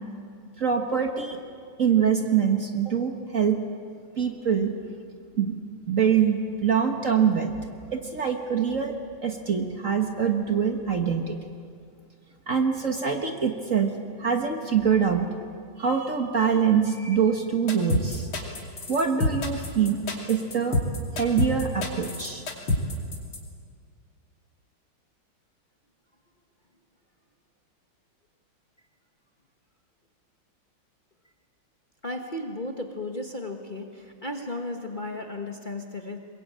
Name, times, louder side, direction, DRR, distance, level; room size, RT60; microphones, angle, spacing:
voice 1, 0.6-1.4 1.8-3.6 4.2-4.7 5.4-5.6 5.9-7.5 7.9-8.9 9.2-11.4 12.5-13.9 14.2-15.3 15.8-18.3 18.9-20.8 21.2-22.4, right 7 dB, 40° right, 4 dB, 1.5 m, -24 dB
sound 1, 17.7-23.4, left 2 dB, 70° left, 3.6 m, -26 dB
voice 2, 32.0-36.2, left 2 dB, 25° left, 3 dB, 1.4 m, -34 dB
22.5 x 21.5 x 8.7 m, 2.2 s
omnidirectional pair, 2.3 m